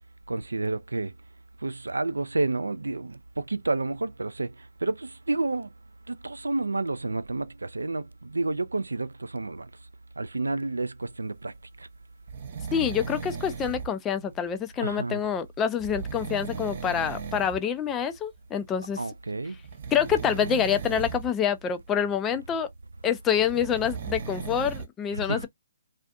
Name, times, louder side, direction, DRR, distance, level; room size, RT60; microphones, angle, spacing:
voice 1, 0.3-1.1 1.6-5.7 6.1-9.7 10.2-11.9 14.8-15.2 19.0-19.6 25.1-25.5, right 2 dB, 80° right, 0.3 m, -30 dB
sound 1, 12.3-13.9 15.8-17.6 17.9-18.2 19.6-21.3 23.4-24.9, right 6 dB, 45° right, 0.6 m, -36 dB
voice 2, 12.7-19.0 19.9-22.7 23.0-25.5, left 8 dB, 15° left, 0.3 m, -27 dB
2.5 x 2.4 x 2.3 m
figure-of-eight pair, 140°, 0 cm